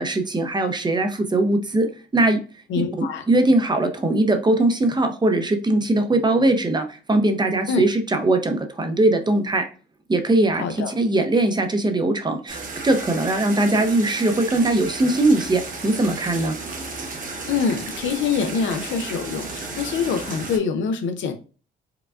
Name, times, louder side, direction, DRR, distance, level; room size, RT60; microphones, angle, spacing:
voice 1, 0.0-2.4 3.0-9.7 10.1-16.6, right 2 dB, 20° right, 6 dB, 0.6 m, -21 dB
voice 2, 2.7-3.2 7.7-7.9 10.6-10.9 17.5-21.3, left 5 dB, 75° left, 7 dB, 0.6 m, -25 dB
sound 1, 12.5-20.6, right 3 dB, 45° right, 1.0 m, -33 dB
4.7 x 2.3 x 2.3 m, 0.36 s
cardioid pair, 90°, 20 cm